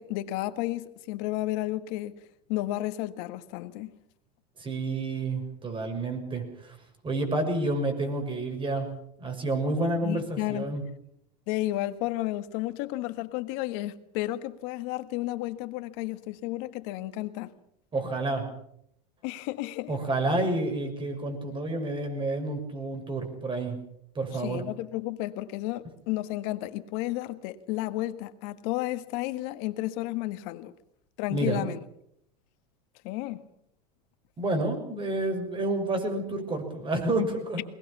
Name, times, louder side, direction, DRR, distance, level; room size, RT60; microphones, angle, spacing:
voice 1, 0.0-2.2 2.5-3.9 10.0-10.7 11.5-17.5 19.2-19.9 24.3-30.7 31.2-31.8 33.0-33.4, left 16 dB, 60° left, 1.6 m, -32 dB
voice 2, 4.6-6.8 7.0-8.9 9.2-10.8 17.9-18.5 19.9-23.8 24.1-24.6 31.3-31.7 34.4-37.6, right 2 dB, 25° right, 6.3 m, -29 dB
21.5 x 19.5 x 7.2 m
hypercardioid pair, 105°, 21 cm